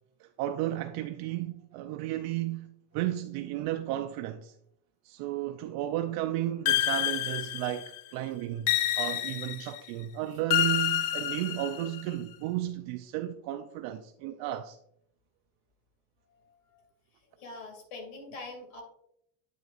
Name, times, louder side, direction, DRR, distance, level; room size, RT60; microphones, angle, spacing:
voice 1, 0.2-4.5 5.0-14.8, right 13 dB, 60° right, 0.5 m, -33 dB
sound 1, 6.7-8.0 8.7-9.8 10.5-12.0, left 13 dB, 60° left, 0.7 m, -28 dB
voice 2, 16.3-16.9 17.4-18.8, left 2 dB, 80° left, 2.6 m, -44 dB
8.6 x 6.3 x 2.5 m
cardioid pair, 150°, 41 cm